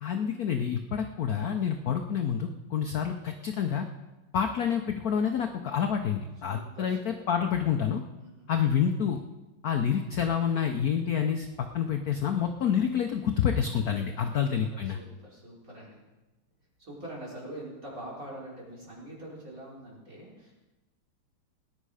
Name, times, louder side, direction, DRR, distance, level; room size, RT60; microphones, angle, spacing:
voice 1, 0.0-3.9 4.3-8.0 8.5-9.2 9.6-11.5 11.7-15.0, left 8 dB, 60° left, 5 dB, 0.9 m, -28 dB
voice 2, 6.5-7.0 8.2-8.5 14.3-14.5 14.9-16.0 16.8-20.6, right 1 dB, 35° right, -5 dB, 4.7 m, -44 dB
18.5 x 10.0 x 4.9 m, 1.1 s
omnidirectional pair, 2.4 m